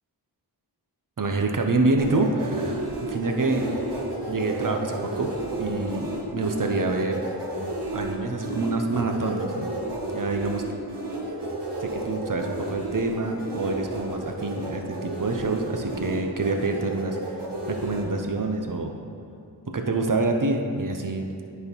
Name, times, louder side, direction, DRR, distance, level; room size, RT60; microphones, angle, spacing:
voice 1, 1.2-3.7 4.3-5.3 5.5-7.2 7.9-9.7 10.1-10.6 11.8-17.2 17.7-18.9 19.7-21.3, right 2 dB, 50° right, 3 dB, 0.9 m, -27 dB
sound 1, 2.0-18.0, right 2 dB, 75° right, 1.3 m, -32 dB
9.5 x 4.4 x 5.3 m, 2.6 s
wide cardioid pair, 45°, 41 cm